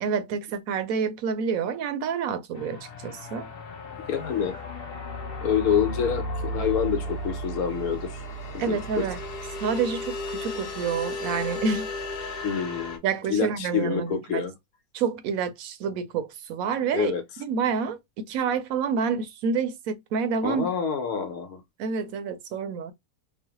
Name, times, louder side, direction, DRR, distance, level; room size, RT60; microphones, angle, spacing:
voice 1, 0.0-3.5 8.6-9.2 9.6-11.9 13.0-14.4 14.9-17.1 17.4-20.7 21.8-22.9, right 6 dB, 75° right, 1.0 m, -28 dB
sound 1, 2.5-13.0, left 1 dB, 50° left, 0.7 m, -34 dB
voice 2, 4.1-4.6 5.4-8.2 8.5-9.1 12.4-13.0 13.3-14.5 16.9-17.2 20.4-21.6, left 7 dB, 75° left, 1.2 m, -27 dB
3.1 x 2.0 x 2.8 m
omnidirectional pair, 1.6 m